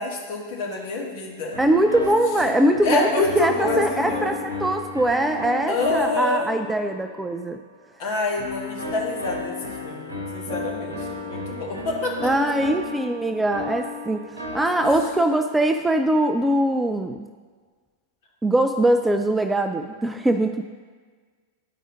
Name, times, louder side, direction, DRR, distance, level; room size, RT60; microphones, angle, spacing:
voice 1, 0.0-1.6 2.8-4.4 5.7-6.5 8.0-12.3, left 2 dB, 50° left, -1 dB, 1.4 m, -27 dB
sound 1, 1.5-7.3 8.4-15.8, left 3 dB, 80° right, 1.0 m, -33 dB
voice 2, 1.6-7.6 12.2-17.3 18.4-20.6, right 1 dB, 10° right, 7 dB, 0.3 m, -22 dB
11.5 x 4.8 x 2.6 m, 1.5 s
figure-of-eight pair, 90°, 0 cm